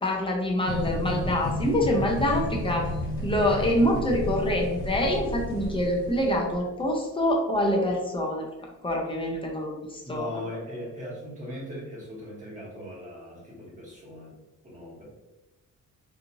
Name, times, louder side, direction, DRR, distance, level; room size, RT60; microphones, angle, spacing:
voice 1, 0.0-2.9 3.2-8.5 8.8-10.3, left 1 dB, 15° left, -1 dB, 0.5 m, -25 dB
sound 1, 0.7-6.5, left 1 dB, 55° left, 1.3 m, -32 dB
voice 2, 10.0-14.3 14.6-15.0, left 1 dB, 20° right, -6 dB, 1.2 m, -39 dB
3.0 x 2.4 x 2.5 m, 1.0 s
cardioid pair, 135°, 34 cm